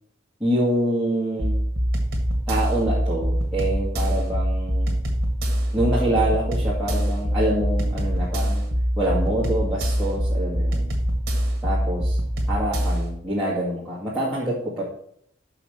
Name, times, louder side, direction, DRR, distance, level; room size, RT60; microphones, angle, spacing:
voice 1, 0.4-1.6 2.5-5.0 5.7-8.7 9.0-10.9 11.6-12.2 12.5-14.8, right 1 dB, ahead, -10 dB, 1.9 m, -26 dB
sound 1, 1.4-13.1, equal, 50° right, 1.8 m, -24 dB
6.0 x 5.8 x 7.1 m, 0.68 s
head